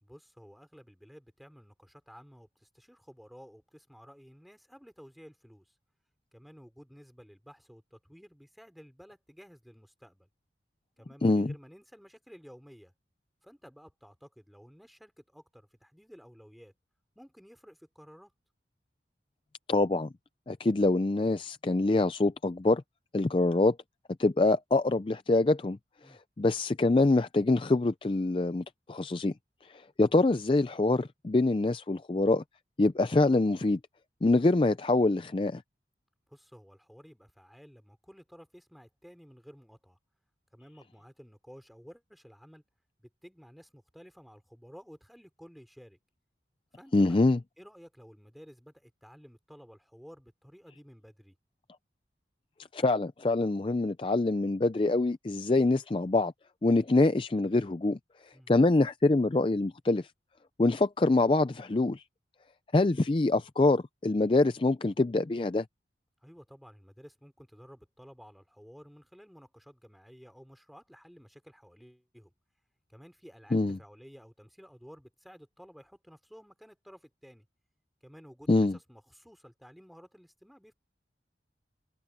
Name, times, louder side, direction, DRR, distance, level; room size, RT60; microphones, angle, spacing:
voice 1, 0.0-5.7 6.3-10.3 11.0-12.9 13.4-16.7 17.1-18.3 26.0-26.2 36.3-40.0 40.5-42.6 43.0-46.0 46.7-47.3 47.6-51.4 58.3-58.5 66.2-72.3 72.9-77.5 78.0-80.7, equal, ahead, 3.3 m, -53 dB
voice 2, 11.2-11.5 19.7-20.1 20.5-22.8 23.1-23.8 24.2-25.8 26.1-29.3 29.7-32.4 32.8-33.8 34.2-35.6 46.9-47.4 52.7-56.3 56.6-60.1 60.6-62.0 62.7-65.6 73.5-73.8 78.5-78.8, left 2 dB, 30° left, 0.4 m, -25 dB
head